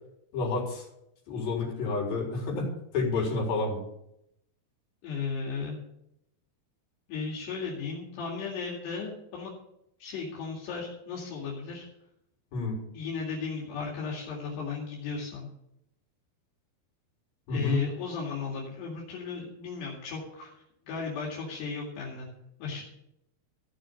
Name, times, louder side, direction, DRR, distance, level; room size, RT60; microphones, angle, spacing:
voice 1, 0.3-0.8 1.3-3.8 12.5-12.8 17.5-17.8, left 3 dB, 60° left, -2 dB, 5.6 m, -29 dB
voice 2, 5.0-5.8 7.1-9.5 10.0-11.8 12.9-15.5 17.5-22.3 22.6-22.8, left 5 dB, 80° left, -3 dB, 4.4 m, -35 dB
16.0 x 6.3 x 7.1 m, 0.79 s
omnidirectional pair, 4.8 m